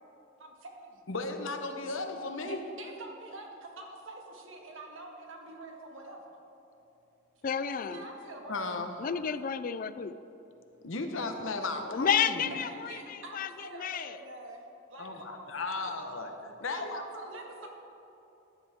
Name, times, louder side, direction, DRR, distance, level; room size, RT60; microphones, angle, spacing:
voice 1, 0.4-1.1 2.4-6.4 7.5-8.6 12.4-14.6 14.9-15.9 16.7-17.7, right 2 dB, 80° right, 1 dB, 1.7 m, -46 dB
voice 2, 1.1-2.6 8.5-8.9 10.8-12.6 15.0-17.0, left 3 dB, 80° left, 5 dB, 1.0 m, -35 dB
voice 3, 7.4-8.0 9.0-10.1 11.9-13.5 13.8-14.1, left 7 dB, 45° left, 13 dB, 0.4 m, -31 dB
14.5 x 11.0 x 3.6 m, 2.9 s
head